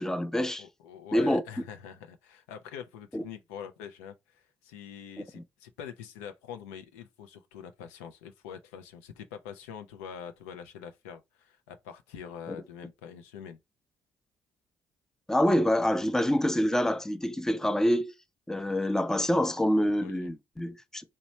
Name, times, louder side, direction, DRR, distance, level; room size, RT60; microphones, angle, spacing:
voice 1, 0.0-0.6 1.1-1.4 3.1-3.2 5.4-5.5 15.3-18.1 18.5-21.0, equal, 5° left, 0.5 m, -26 dB
voice 2, 0.6-13.6 20.0-20.3, left 8 dB, 85° left, 0.4 m, -44 dB
3.0 x 2.2 x 3.9 m
hypercardioid pair, 55°, 8 cm